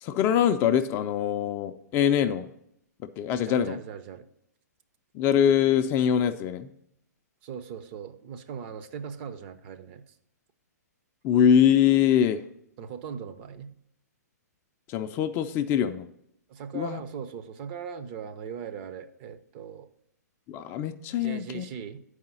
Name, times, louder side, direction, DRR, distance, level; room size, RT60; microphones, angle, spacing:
voice 1, 0.0-2.5 3.0-3.8 5.1-6.7 11.2-12.4 14.9-16.1 16.7-17.0 20.5-21.7, left 9 dB, 25° left, 8 dB, 0.4 m, -23 dB
voice 2, 3.5-4.3 7.4-10.2 12.8-13.7 16.5-19.9 21.1-22.0, right 7 dB, 35° right, 10 dB, 0.6 m, -39 dB
7.3 x 4.8 x 5.5 m, 0.76 s
hypercardioid pair, 130°, 9 cm